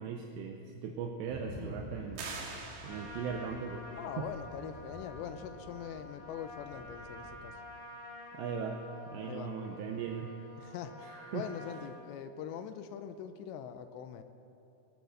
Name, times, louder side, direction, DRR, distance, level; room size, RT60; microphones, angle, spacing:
voice 1, 0.0-2.3 2.8-3.9 4.2-4.3 8.3-8.8 9.1-10.4 11.0-11.5, right 6 dB, 80° right, 3 dB, 2.7 m, -38 dB
sound 1, 1.3-7.5, left 1 dB, 50° left, 2.9 m, -50 dB
sound 2, 2.2-3.5, right 4 dB, 60° right, 3.5 m, -43 dB
Trumpet, 2.8-11.9, left 1 dB, 20° left, 4.8 m, -49 dB
voice 2, 3.9-7.6 9.2-9.5 10.6-14.2, left 8 dB, 80° left, 9 dB, 2.6 m, -43 dB
19.0 x 10.0 x 6.4 m, 2.8 s
omnidirectional pair, 5.5 m